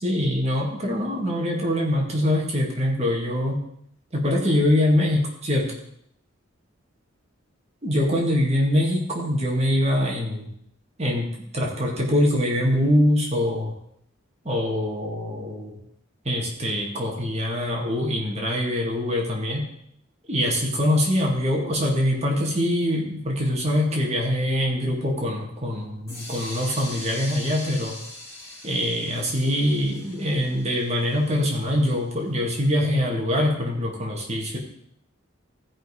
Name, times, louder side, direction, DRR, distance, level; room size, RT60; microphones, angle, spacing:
voice 1, 0.0-3.6 4.1-5.7 7.8-10.5 11.0-11.3 11.5-13.7 14.4-15.8 16.2-19.6 20.3-28.0 28.6-34.6, left 1 dB, 30° right, -1 dB, 2.0 m, -23 dB
sound 1, 26.1-31.9, left 1 dB, 15° left, 4.2 m, -41 dB
15.5 x 5.4 x 4.9 m, 0.72 s
head